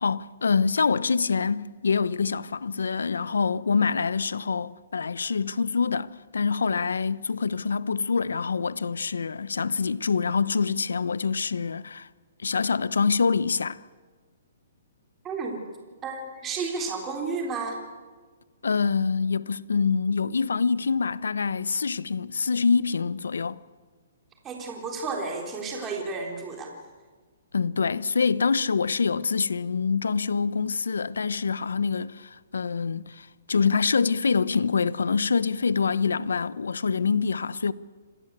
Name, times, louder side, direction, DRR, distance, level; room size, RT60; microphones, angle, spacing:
voice 1, 0.0-12.1 12.4-13.8 18.6-23.6 27.5-37.7, left 5 dB, 85° left, 0.9 m, -25 dB
voice 2, 15.2-15.6 16.0-17.8 24.4-26.8, right 4 dB, 20° right, 3.8 m, -32 dB
27.0 x 18.5 x 8.3 m
hypercardioid pair, 145°, 0 cm